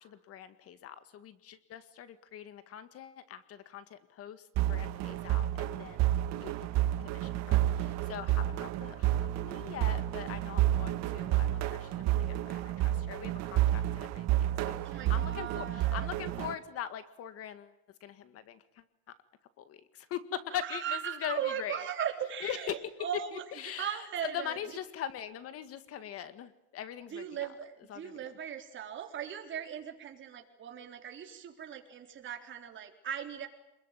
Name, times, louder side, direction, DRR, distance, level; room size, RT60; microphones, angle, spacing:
voice 1, 0.0-6.0 6.4-6.6 7.0-17.7 18.0-18.6 19.6-21.8 22.4-22.9 23.3-27.2 27.9-28.3, left 10 dB, 45° left, 12 dB, 1.9 m, -42 dB
sound 1, 4.6-16.5, right 13 dB, 55° right, 1.9 m, -30 dB
voice 2, 6.6-6.9 14.8-16.2 20.5-24.6 27.1-33.5, right 9 dB, 35° right, 4 dB, 3.9 m, -38 dB
27.5 x 21.5 x 9.2 m, 0.84 s
cardioid pair, 145°, 31 cm